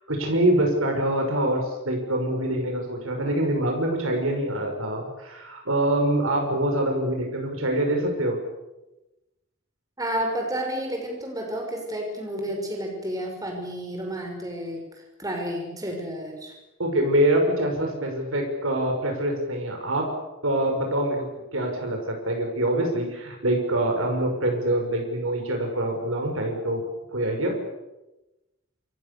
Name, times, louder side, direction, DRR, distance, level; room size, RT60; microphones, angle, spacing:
voice 1, 0.0-8.4 16.8-20.1 20.4-26.8 27.1-27.6, right 1 dB, 75° right, 2 dB, 6.1 m, -25 dB
voice 2, 10.0-14.8 15.2-16.5, right 1 dB, 15° right, 2 dB, 5.9 m, -31 dB
28.5 x 25.5 x 7.0 m, 1.0 s
head